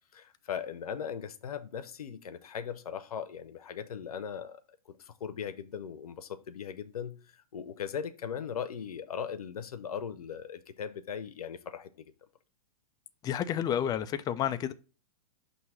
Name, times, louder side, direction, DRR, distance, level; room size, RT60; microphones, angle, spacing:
voice 1, 0.1-4.6 4.9-7.2 7.5-12.1, left 7 dB, 80° left, 0.8 m, -39 dB
voice 2, 13.2-14.7, left 9 dB, 20° left, 0.4 m, -30 dB
6.0 x 2.9 x 5.6 m
hypercardioid pair, 120°, 19 cm